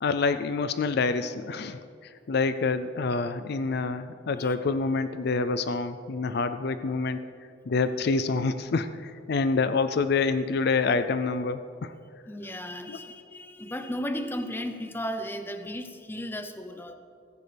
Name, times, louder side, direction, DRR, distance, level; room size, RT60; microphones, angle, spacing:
voice 1, 0.0-7.2 7.7-11.9 12.9-13.0, left 4 dB, 55° left, 11 dB, 0.4 m, -27 dB
voice 2, 12.3-16.9, equal, 10° left, 7 dB, 0.7 m, -35 dB
16.5 x 15.0 x 3.4 m, 2.3 s
head